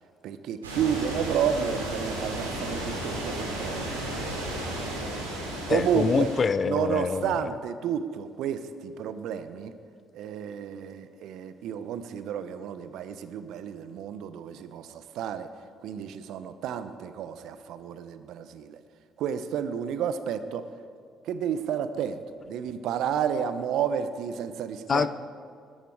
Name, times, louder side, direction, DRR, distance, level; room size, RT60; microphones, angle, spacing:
voice 1, 0.2-4.3 5.7-6.3 6.6-9.7 10.1-15.5 15.8-18.8 19.2-20.7 21.2-22.2 22.5-25.1, right 8 dB, 65° right, 12 dB, 0.9 m, -31 dB
sound 1, 0.6-6.4, right 1 dB, 85° right, 3.1 m, -33 dB
voice 2, 5.7-7.5 24.9-25.1, left 5 dB, 40° left, 15 dB, 0.7 m, -25 dB
20.0 x 14.0 x 4.8 m, 2.3 s
hypercardioid pair, 45°, 0 cm